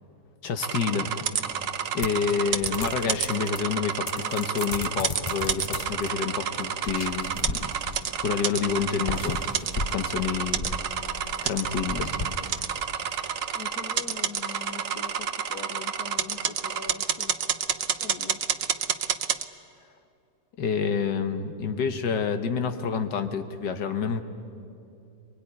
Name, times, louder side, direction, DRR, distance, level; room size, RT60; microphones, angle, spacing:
voice 1, 0.4-1.2 1.9-7.6 8.2-9.4 9.7-10.6 11.4-12.1 20.6-24.2, left 6 dB, 85° left, 7 dB, 1.8 m, -28 dB
sound 1, 0.6-19.4, right 8 dB, 55° right, 1.1 m, -29 dB
sound 2, 2.0-3.7 4.1-6.1 6.8-8.2 8.7-13.0, left 3 dB, 30° left, 0.7 m, -35 dB
voice 2, 13.5-17.3 18.0-18.4, left 5 dB, 65° left, 8 dB, 1.7 m, -42 dB
23.5 x 22.0 x 9.7 m, 2.6 s
omnidirectional pair, 1.8 m